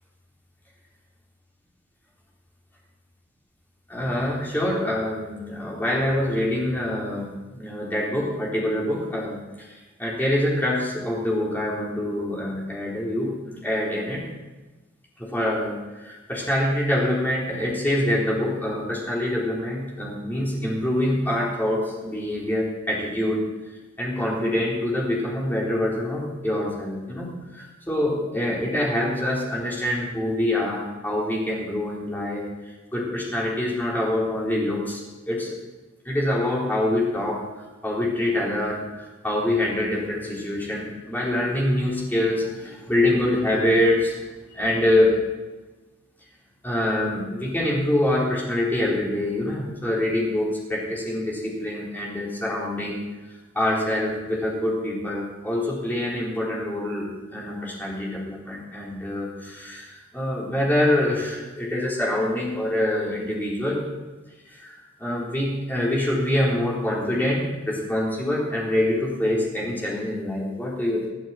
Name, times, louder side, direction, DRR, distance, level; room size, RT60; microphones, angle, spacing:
voice 1, 3.9-14.2 15.2-23.4 24.0-32.4 32.9-35.0 35.3-35.6 36.0-37.4 37.8-44.2 44.5-45.1 46.6-53.0 53.5-63.8 64.5-71.1, left 1 dB, 10° left, -5 dB, 4.2 m, -25 dB
25.0 x 8.8 x 4.5 m, 1.2 s
head